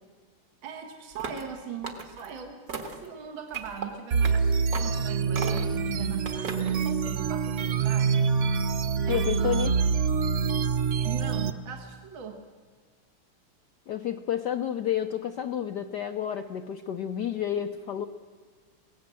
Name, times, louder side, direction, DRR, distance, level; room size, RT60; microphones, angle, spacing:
voice 1, 0.6-2.6 2.9-8.3 9.1-9.5 11.0-12.4, right 7 dB, 60° right, 4 dB, 2.3 m, -40 dB
sound 1, 1.1-1.5 1.8-2.3 2.7-3.1 3.5-3.9 4.2-4.4 4.7-5.0 5.3-5.8 6.2-6.8, right 4 dB, 45° right, 2.1 m, -36 dB
sound 2, 4.1-11.5, right 5 dB, 80° right, 0.6 m, -26 dB
voice 2, 9.0-9.7 13.9-18.1, left 10 dB, 65° left, 6 dB, 1.1 m, -30 dB
23.5 x 17.5 x 7.6 m, 1.5 s
omnidirectional pair, 2.4 m